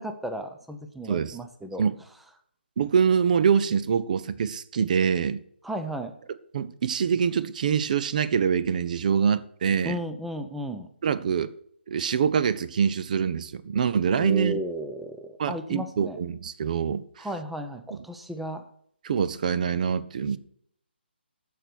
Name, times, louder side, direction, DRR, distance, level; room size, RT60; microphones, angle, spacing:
voice 1, 0.0-1.9 5.6-6.1 9.8-10.9 14.2-16.2 17.2-18.6, right 1 dB, ahead, 0.5 m, -34 dB
voice 2, 2.8-5.4 6.5-10.0 11.0-11.5 11.9-14.6 15.4-17.3 17.9-18.0 19.0-20.4, right 7 dB, 45° right, 0.5 m, -25 dB
13.5 x 4.7 x 6.2 m
figure-of-eight pair, 150°, 6 cm